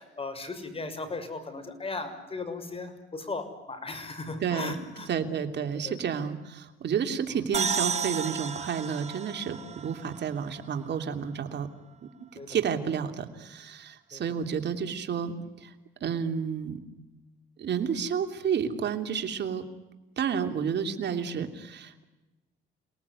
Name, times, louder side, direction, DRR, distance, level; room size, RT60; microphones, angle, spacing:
voice 1, 0.0-5.1 5.8-6.0 7.3-7.4 12.4-12.6 14.1-14.2, left 3 dB, 30° left, 8 dB, 6.3 m, -37 dB
voice 2, 4.4-11.7 12.0-12.1 12.5-15.7 16.0-16.8 17.6-19.7 20.2-22.0, right 7 dB, 60° right, 6 dB, 3.1 m, -31 dB
sound 1, 7.5-11.1, right 5 dB, 35° right, 1.9 m, -33 dB
29.5 x 19.0 x 9.8 m, 1.1 s
cardioid pair, 90°, 20 cm